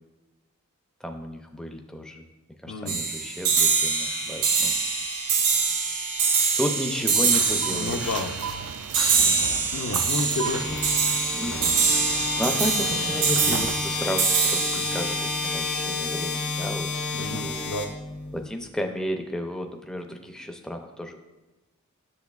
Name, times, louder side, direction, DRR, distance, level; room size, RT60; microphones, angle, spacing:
voice 1, 1.0-2.2 2.6-4.7 6.6-8.3 9.2-9.7 11.3-11.7 12.4-17.8 18.3-21.2, equal, 5° left, 3 dB, 0.4 m, -33 dB
voice 2, 2.7-3.0 7.7-8.4 9.7-10.9 11.4-11.8 13.4-13.7 14.7-14.9 17.1-17.9, left 3 dB, 65° left, 7 dB, 0.5 m, -31 dB
sound 1, 2.9-16.3, right 5 dB, 85° right, 1.4 m, -25 dB
sound 2, 7.3-13.8, right 8 dB, 70° right, 0.3 m, -36 dB
sound 3, 10.4-18.5, left 4 dB, 90° left, 1.5 m, -30 dB
10.5 x 6.7 x 2.3 m, 1.1 s
head